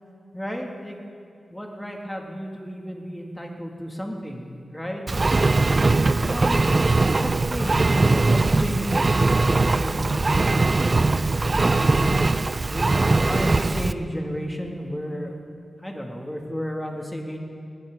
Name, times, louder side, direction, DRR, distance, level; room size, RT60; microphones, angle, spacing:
voice 1, 0.3-1.0 1.5-5.0 6.0-12.2 12.7-15.4 15.8-17.4, equal, 10° left, 1 dB, 2.4 m, -33 dB
Engine, 5.1-13.9, right 3 dB, 40° right, 0.5 m, -20 dB
19.5 x 18.5 x 3.9 m, 2.4 s
wide cardioid pair, 80°, 0 cm